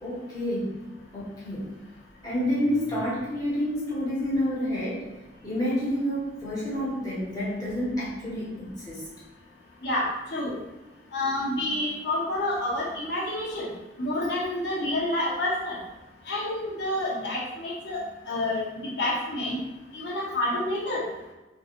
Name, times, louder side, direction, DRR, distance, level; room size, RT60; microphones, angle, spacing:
voice 1, 0.0-0.7 1.1-1.7 2.2-5.0 5.4-9.0, equal, 20° left, -7 dB, 0.9 m, -29 dB
voice 2, 9.8-10.5 11.1-13.7 14.0-15.8 16.3-18.6 19.0-19.6 19.9-21.0, left 1 dB, 70° left, -5 dB, 0.7 m, -28 dB
2.7 x 2.3 x 2.4 m, 1.1 s
head